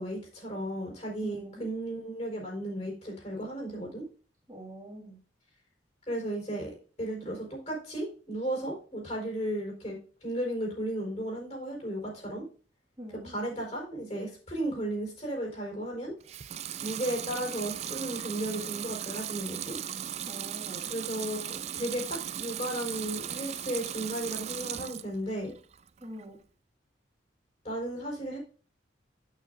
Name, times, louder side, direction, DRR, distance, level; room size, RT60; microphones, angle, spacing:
voice 1, 0.0-4.0 6.1-12.4 13.2-16.1 16.8-19.8 20.9-25.5 27.6-28.4, right 1 dB, 35° left, -1 dB, 4.6 m, -35 dB
voice 2, 1.2-1.7 4.5-5.2 13.0-13.4 20.2-20.9 26.0-26.4, equal, 15° right, -4 dB, 2.2 m, -44 dB
Water tap faucet / Sink (filling or washing) / Liquid, 16.2-25.1 25.5-26.3, right 10 dB, 35° right, 0.3 m, -37 dB
8.9 x 8.7 x 2.6 m, 0.38 s
head